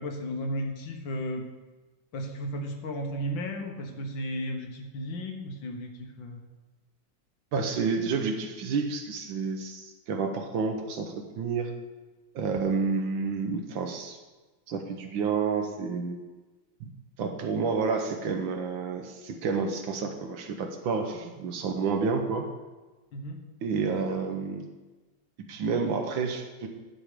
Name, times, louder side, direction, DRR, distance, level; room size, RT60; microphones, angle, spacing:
voice 1, 0.0-1.5 2.1-6.4 23.1-23.4, equal, 65° left, 3 dB, 1.9 m, -34 dB
voice 2, 7.5-11.7 12.3-14.2 14.7-16.2 16.8-16.9 17.2-22.5 23.6-24.6 25.5-26.7, right 5 dB, 70° right, 5 dB, 1.6 m, -29 dB
11.0 x 6.7 x 5.1 m, 1.2 s
omnidirectional pair, 2.3 m